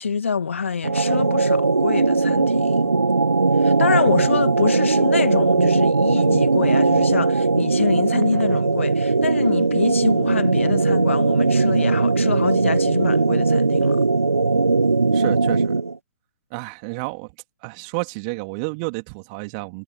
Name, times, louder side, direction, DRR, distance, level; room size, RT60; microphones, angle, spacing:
voice 1, 0.0-2.8 3.6-14.0, left 6 dB, 65° left, 2.0 m, -26 dB
sound 1, 0.8-16.0, right 3 dB, 80° right, 0.6 m, -19 dB
voice 2, 15.1-15.7 16.5-17.3 17.6-19.8, right 34 dB, 30° right, 3.4 m, -30 dB
figure-of-eight pair, 120°, 8 cm